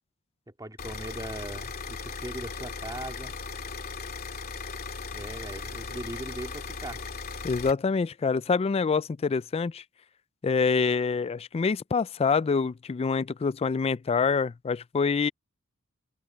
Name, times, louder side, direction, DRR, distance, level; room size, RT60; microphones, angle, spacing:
voice 1, 0.5-3.4 5.1-7.0, right 1 dB, 20° right, 2.6 m, -39 dB
sound 1, 0.8-7.7, left 4 dB, 45° left, 2.5 m, -37 dB
voice 2, 7.4-9.8 10.4-15.3, left 5 dB, 30° left, 0.3 m, -26 dB
open air
head